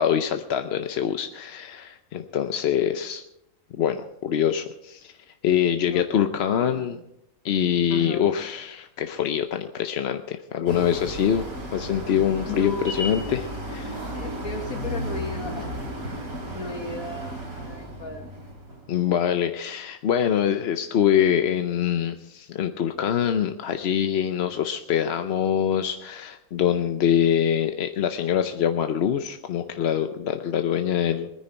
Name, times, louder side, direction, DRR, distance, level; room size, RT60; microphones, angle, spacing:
voice 1, 0.0-3.2 3.8-5.1 5.4-7.0 7.4-11.5 11.7-14.0 18.9-31.3, left 9 dB, 55° left, 8 dB, 0.8 m, -24 dB
voice 2, 5.8-6.3 6.6-6.9 7.9-8.3 12.4-13.2 14.1-15.7 16.0-16.3 16.5-18.3, left 2 dB, 75° left, 3 dB, 2.4 m, -36 dB
sound 1, 10.7-19.0, equal, 80° right, 3.8 m, -34 dB
21.0 x 9.8 x 4.5 m, 0.83 s
omnidirectional pair, 1.5 m